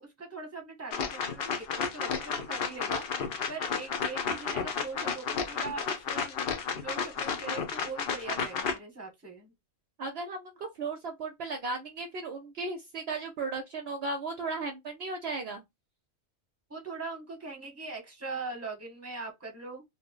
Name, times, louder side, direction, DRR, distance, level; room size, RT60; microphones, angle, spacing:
voice 1, 0.0-6.4 6.8-9.5 16.7-19.8, right 3 dB, 15° right, 1.0 m, -41 dB
sound 1, 0.9-8.8, left 6 dB, 60° left, 0.7 m, -32 dB
voice 2, 10.0-15.6, right 3 dB, 65° right, 0.8 m, -35 dB
2.8 x 2.0 x 3.7 m
omnidirectional pair, 1.3 m